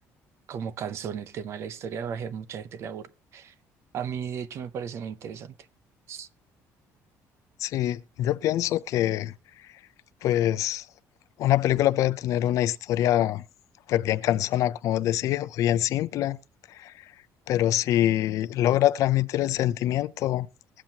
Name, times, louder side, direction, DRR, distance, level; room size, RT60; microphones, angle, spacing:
voice 1, 0.5-3.5 3.9-5.5 6.1-6.3, right 7 dB, 50° right, 0.7 m, -35 dB
voice 2, 7.6-9.3 9.6-9.7 10.2-10.9 11.4-13.4 13.9-16.4 16.7-17.1 17.5-20.5, left 13 dB, 60° left, 0.5 m, -24 dB
21.0 x 7.5 x 2.8 m
cardioid pair, 160°, 6 cm